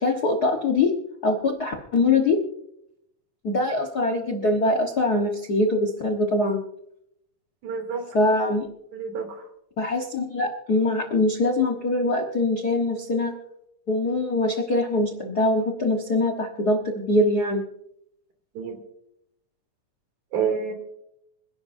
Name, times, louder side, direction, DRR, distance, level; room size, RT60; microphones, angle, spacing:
voice 1, 0.0-0.9 1.2-2.4 3.4-6.6 8.1-8.7 9.8-13.3 13.9-17.6, left 2 dB, 45° left, 3 dB, 1.3 m, -23 dB
voice 2, 7.6-8.1 8.9-9.5 18.5-18.8 20.3-20.7, right 6 dB, 70° right, 4 dB, 4.2 m, -28 dB
26.5 x 11.0 x 2.7 m, 0.77 s
omnidirectional pair, 3.5 m